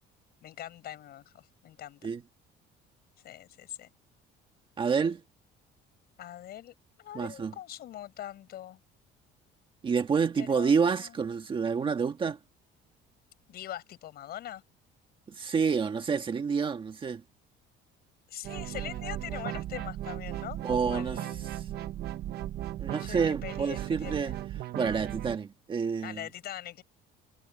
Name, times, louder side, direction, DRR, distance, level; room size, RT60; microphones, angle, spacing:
voice 1, 0.4-2.1 3.2-3.9 6.2-8.8 10.4-11.1 13.5-14.6 18.3-21.7 22.9-24.3 26.0-26.8, left 12 dB, 50° left, 6.5 m, -43 dB
voice 2, 4.8-5.2 7.1-7.5 9.8-12.4 15.3-17.2 20.6-21.2 21.5-21.7 22.8-24.3 24.7-26.2, right 6 dB, 25° right, 1.6 m, -28 dB
sound 1, 18.4-25.4, right 13 dB, 50° right, 1.1 m, -36 dB
cardioid pair, 165°, 20 cm